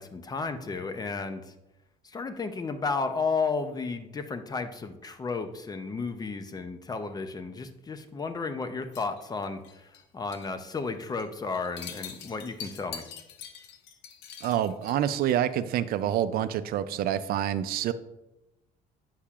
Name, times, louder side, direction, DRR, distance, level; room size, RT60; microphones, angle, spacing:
voice 1, 0.0-1.4 2.1-9.6 10.1-13.0, left 4 dB, 25° left, 9 dB, 0.6 m, -33 dB
sound 1, 8.9-10.0 10.3-10.6 10.9-11.2 11.5-15.5, left 7 dB, 85° left, 0.6 m, -44 dB
voice 2, 14.4-17.9, right 11 dB, 65° right, 12 dB, 0.4 m, -27 dB
8.4 x 5.6 x 2.4 m, 0.95 s
cardioid pair, 110°, 17 cm